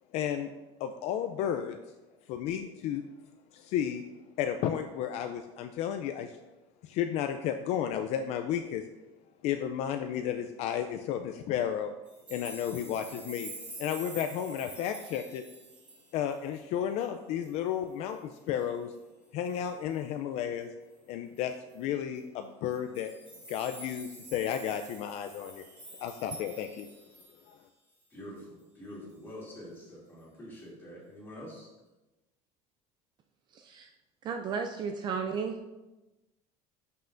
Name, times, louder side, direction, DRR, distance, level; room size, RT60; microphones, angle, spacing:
voice 1, 0.1-0.5 0.8-1.8 2.3-3.0 3.5-4.0 4.4-6.4 6.8-8.8 9.4-12.0 12.3-15.4 16.1-18.9 19.3-20.7 21.1-23.1 23.5-25.6 26.0-26.9 27.5-27.6, left 9 dB, 50° left, 7 dB, 0.4 m, -33 dB
sound 1, 12.1-16.6 17.0-17.1 17.4-17.5 17.9-18.4 19.4-19.7 21.3-21.4 21.7-21.8 22.7-27.5 28.0-28.1, right 1 dB, 10° right, 1.5 m, -47 dB
voice 2, 28.1-31.7, equal, 15° left, -6 dB, 2.5 m, -46 dB
voice 3, 33.5-33.9 34.2-35.7, right 6 dB, 30° right, 5 dB, 0.4 m, -34 dB
11.0 x 5.6 x 2.6 m, 1.1 s
cardioid pair, 170°, 14 cm